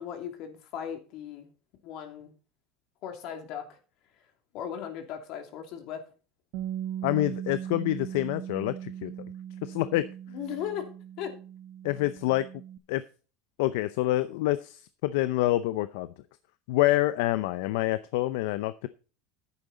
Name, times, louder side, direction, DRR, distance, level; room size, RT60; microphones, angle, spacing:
voice 1, 0.0-1.5 1.8-2.3 3.0-3.6 4.5-6.0 10.3-10.9 11.2-11.3, left 9 dB, 60° left, 5 dB, 2.8 m, -37 dB
Bass guitar, 6.5-12.8, right 10 dB, 65° right, 1.1 m, -39 dB
voice 2, 7.0-9.1 9.6-10.1 11.8-12.5 12.9-13.0 13.6-16.1 16.7-18.9, left 16 dB, 75° left, 13 dB, 0.6 m, -27 dB
11.0 x 8.9 x 4.1 m, 0.36 s
supercardioid pair, 120°, 0 cm